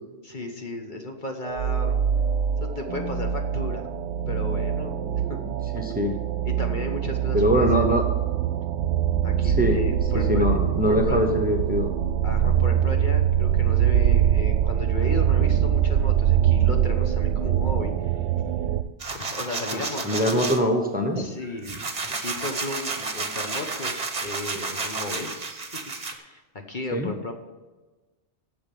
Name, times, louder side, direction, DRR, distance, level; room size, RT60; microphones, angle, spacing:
voice 1, 0.2-2.0 2.6-3.9 4.3-5.4 6.4-7.9 9.2-10.5 10.9-11.2 12.2-18.2 19.1-20.7 21.2-21.9 22.1-25.3 25.7-25.8 26.1-26.4 26.7-27.3, left 2 dB, 45° left, 3 dB, 1.2 m, -34 dB
sound 1, 1.4-18.8, right 9 dB, 85° right, 0.9 m, -23 dB
voice 2, 5.7-6.1 7.3-8.0 9.4-9.8 10.1-11.9 19.7-21.2 26.9-27.1, equal, 10° right, 3 dB, 1.0 m, -23 dB
sound 2, 19.0-20.6 21.1-26.1, right 4 dB, 35° right, 1.0 m, -31 dB
8.7 x 6.9 x 8.5 m, 1.2 s
omnidirectional pair, 1.2 m